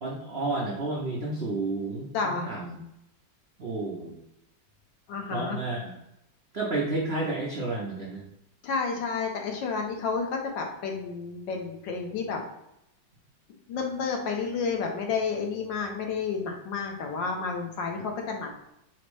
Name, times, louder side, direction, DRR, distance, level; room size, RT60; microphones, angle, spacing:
voice 1, 0.0-2.8 3.6-4.2 5.3-5.9 6.5-8.2, right 2 dB, 70° right, -4 dB, 0.5 m, -31 dB
voice 2, 2.1-2.5 5.1-5.6 8.6-12.4 13.7-18.5, left 5 dB, 75° left, 2 dB, 1.4 m, -30 dB
4.3 x 2.0 x 4.5 m, 0.82 s
omnidirectional pair, 2.0 m